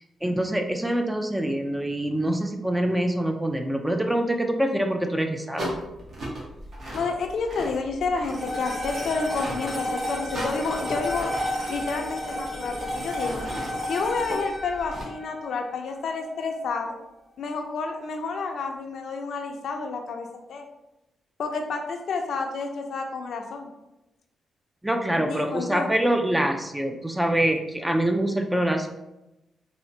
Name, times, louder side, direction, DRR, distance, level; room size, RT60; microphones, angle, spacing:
voice 1, 0.2-5.7 24.8-28.9, right 1 dB, 10° right, 4 dB, 0.4 m, -25 dB
sound 1, 5.6-15.0, equal, 55° right, 1.0 m, -38 dB
voice 2, 6.9-11.3 11.7-13.4 13.8-16.9 17.4-20.7 21.4-23.7 25.3-25.9, left 4 dB, 70° left, 3 dB, 0.5 m, -30 dB
sound 2, 8.3-16.8, left 1 dB, 25° right, 1.5 m, -33 dB
4.1 x 2.1 x 2.6 m, 0.93 s
cardioid pair, 95°, 0 cm